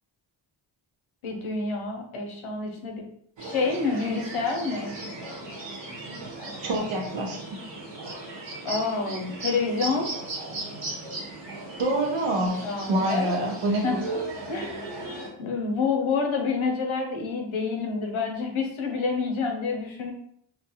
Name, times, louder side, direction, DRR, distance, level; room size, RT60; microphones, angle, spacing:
voice 1, 1.2-3.0 3.4-5.0 8.6-10.1 12.6-13.5 13.8-14.0 14.5-14.9 15.4-20.1, left 4 dB, 75° left, 3 dB, 0.7 m, -28 dB
sound 1, 3.4-15.3, right 2 dB, 60° right, 1.0 m, -37 dB
voice 2, 6.6-7.4 11.8-12.6 12.9-14.0, right 1 dB, 85° right, 0 dB, 0.8 m, -26 dB
2.4 x 2.3 x 2.8 m, 0.67 s
cardioid pair, 45°, 49 cm